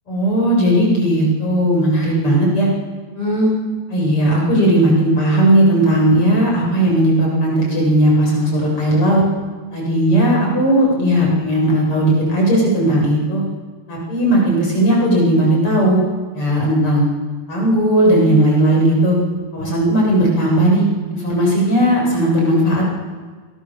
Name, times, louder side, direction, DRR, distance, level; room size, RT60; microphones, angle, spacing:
voice 1, 0.1-2.7 3.1-3.5 3.9-9.2 9.7-13.4 13.9-16.0 16.3-17.0 17.5-19.2 19.5-20.8 21.1-22.9, right 1 dB, 30° left, -2 dB, 8.8 m, -16 dB
28.0 x 25.0 x 7.4 m, 1.5 s
omnidirectional pair, 4.7 m